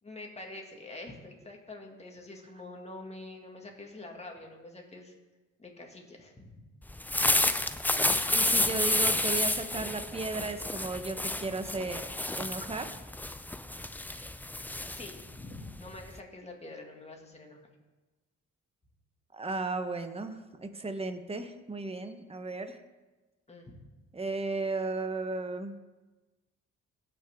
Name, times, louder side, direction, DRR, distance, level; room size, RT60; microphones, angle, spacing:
voice 1, 0.0-5.1 5.6-6.6 14.9-17.6 23.5-23.8, left 2 dB, 20° left, 1 dB, 2.3 m, -46 dB
sound 1, 6.9-16.2, left 1 dB, 5° left, 0.4 m, -30 dB
voice 2, 8.3-12.1 12.3-13.0 19.3-22.8 24.1-25.8, right 3 dB, 20° right, 8 dB, 1.1 m, -35 dB
18.0 x 6.2 x 3.7 m, 1.2 s
cardioid pair, 90°, 30 cm